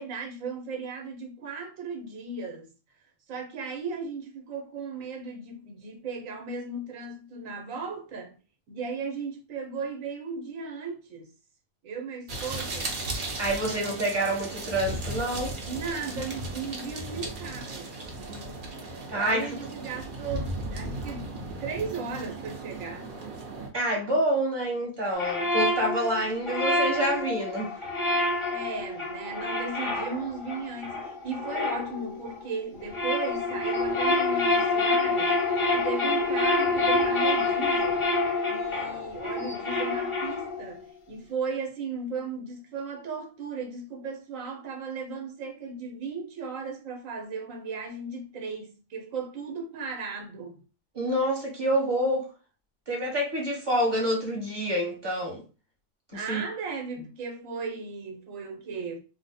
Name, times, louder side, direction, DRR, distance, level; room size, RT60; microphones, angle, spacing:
voice 1, 0.0-2.7 3.3-8.3 8.7-11.3 11.8-13.0 15.7-17.9 18.2-23.2 28.5-38.1 38.5-50.6 56.1-59.0, right 4 dB, 80° right, 1.2 m, -36 dB
sound 1, 12.3-23.7, right 2 dB, 45° right, 0.8 m, -36 dB
voice 2, 13.4-15.6 19.1-19.5 23.7-27.8 50.9-52.3 52.9-55.4 56.1-56.4, right 1 dB, 20° right, 1.1 m, -27 dB
sound 2, 25.2-32.4 32.8-40.7, left 2 dB, 30° left, 0.6 m, -27 dB
2.8 x 2.1 x 4.0 m
omnidirectional pair, 1.4 m